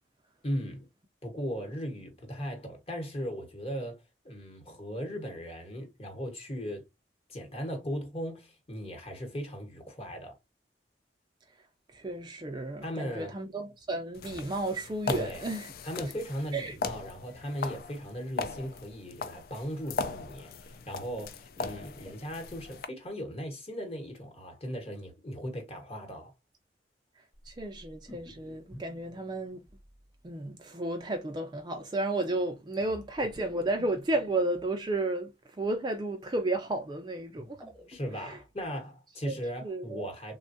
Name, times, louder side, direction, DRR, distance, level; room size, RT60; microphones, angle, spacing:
voice 1, 0.4-0.9 1.2-6.8 7.3-10.4 12.8-13.3 15.1-15.4 15.8-26.3 37.9-40.4, equal, 35° left, 1.1 m, -37 dB
voice 2, 11.9-15.7 16.5-16.8 27.5-29.6 30.2-37.6 38.1-38.4 39.2-39.4 39.6-40.0, right 2 dB, 25° right, 0.4 m, -33 dB
sound 1, 14.1-22.9, left 4 dB, 55° left, 0.3 m, -39 dB
sound 2, 27.3-30.2 32.8-34.8 37.2-38.6, equal, ahead, 0.7 m, -52 dB
3.3 x 2.2 x 2.6 m
head